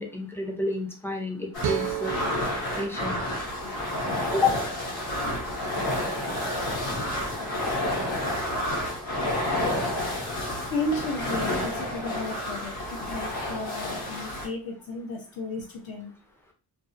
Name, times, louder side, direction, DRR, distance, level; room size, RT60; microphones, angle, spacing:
voice 1, 0.0-2.2 2.8-3.2 4.3-4.6, left 3 dB, 5° left, 1 dB, 0.4 m, -29 dB
sound 1, 1.5-14.5, left 1 dB, 90° left, 1.2 m, -30 dB
sound 2, 1.6-4.8, right 10 dB, 70° right, 0.5 m, -35 dB
voice 2, 3.6-4.1 10.0-10.2 10.7-16.1, left 2 dB, 70° left, -2 dB, 0.8 m, -34 dB
2.6 x 2.4 x 2.5 m, 0.35 s
wide cardioid pair, 160°, 37 cm